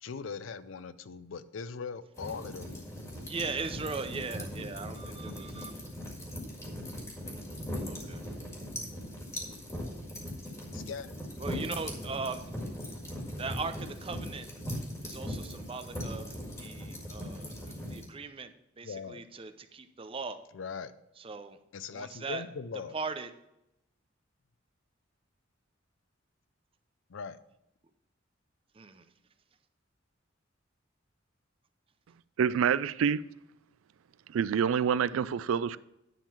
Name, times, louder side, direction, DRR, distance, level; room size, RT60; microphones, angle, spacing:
voice 1, 0.0-3.1 10.7-11.2 18.8-19.2 20.5-20.9 21.7-23.0 27.1-27.4, left 5 dB, 75° left, 0.5 m, -40 dB
sound 1, 2.2-18.0, equal, 15° left, 1.8 m, -39 dB
voice 2, 3.3-5.8 7.8-8.2 11.4-12.5 13.3-14.5 15.0-16.3 16.6-20.4 21.2-21.6 21.9-22.4 22.9-23.3 28.7-29.1, right 4 dB, 30° right, 0.5 m, -39 dB
voice 3, 32.4-33.2 34.3-35.8, right 7 dB, 90° right, 0.3 m, -27 dB
10.0 x 3.8 x 7.1 m
head